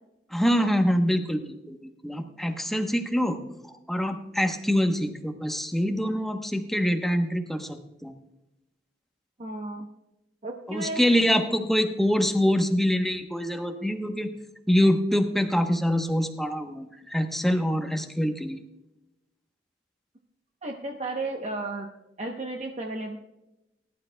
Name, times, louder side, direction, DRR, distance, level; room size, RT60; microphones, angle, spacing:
voice 1, 0.3-3.4 3.6-8.1 10.7-14.3 14.7-18.6, equal, ahead, 5 dB, 0.9 m, -25 dB
voice 2, 9.4-9.9 10.4-11.2 20.6-21.9 22.2-23.2, right 2 dB, 40° right, 2 dB, 0.8 m, -33 dB
19.5 x 11.5 x 2.2 m, 0.96 s
head